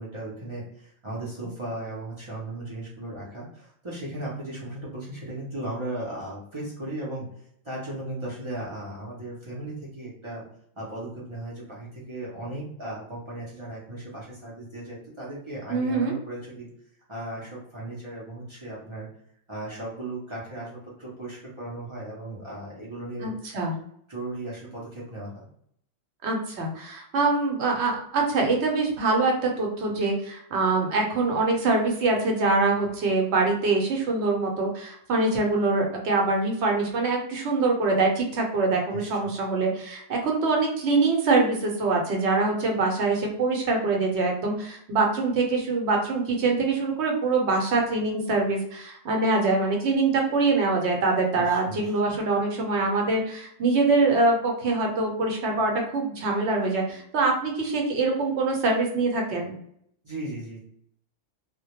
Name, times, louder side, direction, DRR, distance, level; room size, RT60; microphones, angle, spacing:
voice 1, 0.0-7.2 7.6-10.4 10.8-16.7 17.1-19.1 19.5-23.3 24.1-25.5 38.9-39.1 51.4-51.9 60.0-60.6, right 1 dB, 50° right, -6 dB, 0.3 m, -36 dB
voice 2, 15.7-16.2 23.2-23.7 26.2-59.6, right 3 dB, 65° right, 1 dB, 0.8 m, -24 dB
2.1 x 2.1 x 2.8 m, 0.68 s
omnidirectional pair, 1.3 m